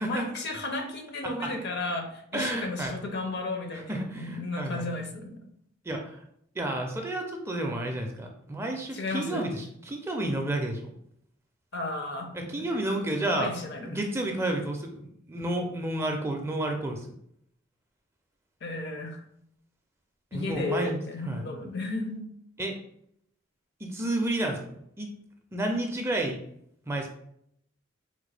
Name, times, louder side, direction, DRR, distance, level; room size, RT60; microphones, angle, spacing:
voice 1, 0.0-5.4 8.9-9.4 11.7-12.7 13.2-13.9 18.6-19.2 20.3-22.2, left 2 dB, 60° left, 4 dB, 0.6 m, -34 dB
voice 2, 2.3-2.9 3.7-4.9 5.8-6.2 6.5-10.9 12.3-13.5 13.9-17.1 20.3-21.0 21.2-21.5 22.6-22.8 23.8-25.1 25.5-26.4 26.9-27.1, right 1 dB, 15° right, 2 dB, 0.4 m, -31 dB
3.6 x 2.1 x 3.2 m, 0.70 s
head